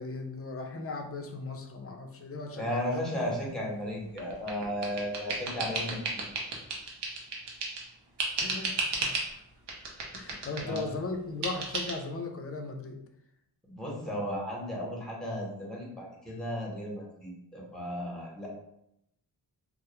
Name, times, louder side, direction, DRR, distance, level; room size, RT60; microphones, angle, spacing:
voice 1, 0.0-2.9 8.4-9.3 10.1-13.0, left 3 dB, 35° left, 4 dB, 0.4 m, -37 dB
voice 2, 2.6-6.3 10.6-10.8 13.6-18.5, equal, ahead, -4 dB, 0.8 m, -35 dB
sound 1, 4.2-7.9 8.2-9.3 9.7-10.9 11.4-11.9, right 3 dB, 85° right, 0.6 m, -34 dB
2.2 x 2.0 x 2.9 m, 0.79 s
wide cardioid pair, 65°, 40 cm